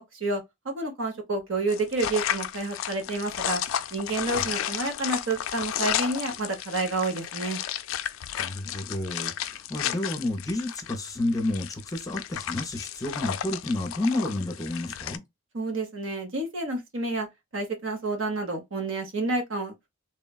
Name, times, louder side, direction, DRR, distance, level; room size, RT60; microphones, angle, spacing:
voice 1, 0.1-3.6 3.9-7.6 15.5-17.3 17.5-19.9, right 2 dB, 60° right, 0.9 m, -29 dB
sound 1, 1.7-15.2, left 10 dB, 65° left, 0.3 m, -33 dB
voice 2, 8.4-15.2, left 2 dB, 15° left, 0.6 m, -30 dB
3.2 x 2.1 x 2.3 m
head